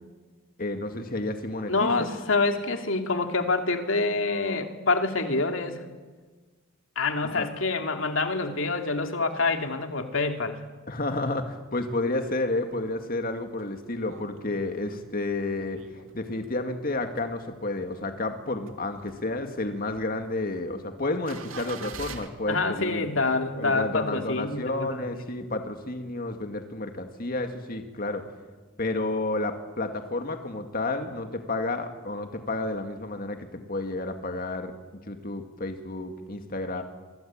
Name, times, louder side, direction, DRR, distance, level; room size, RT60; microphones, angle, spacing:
voice 1, 0.6-2.1 7.3-7.5 10.9-15.8 16.1-23.1 23.6-28.2 28.8-34.7 35.1-36.8, left 2 dB, 45° left, 6 dB, 2.1 m, -31 dB
voice 2, 1.7-5.8 7.0-10.6 22.5-25.1, left 3 dB, 65° left, 5 dB, 2.6 m, -26 dB
sound 1, 11.8-12.5 12.9-13.0 13.2-16.6 17.0-17.9 18.3-22.3, right 5 dB, 70° right, 2.5 m, -45 dB
27.0 x 24.5 x 8.8 m, 1.4 s
head